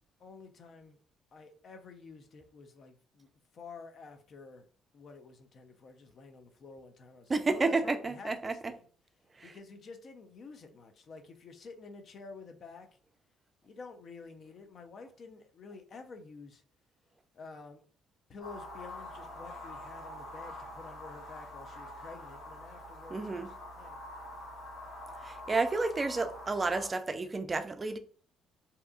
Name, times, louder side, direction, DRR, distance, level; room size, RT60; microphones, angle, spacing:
voice 1, 0.2-1.0 1.3-4.6 4.9-8.9 9.4-12.9 13.6-16.6 17.3-17.8 18.3-24.0, left 4 dB, 55° left, 0.5 m, -50 dB
voice 2, 7.3-8.6 9.4-9.5 23.1-23.5 25.2-28.0, right 3 dB, 30° right, 0.3 m, -31 dB
sound 1, 18.4-26.9, left 1 dB, 70° left, 1.2 m, -45 dB
2.7 x 2.3 x 2.4 m
supercardioid pair, 70°, 0 cm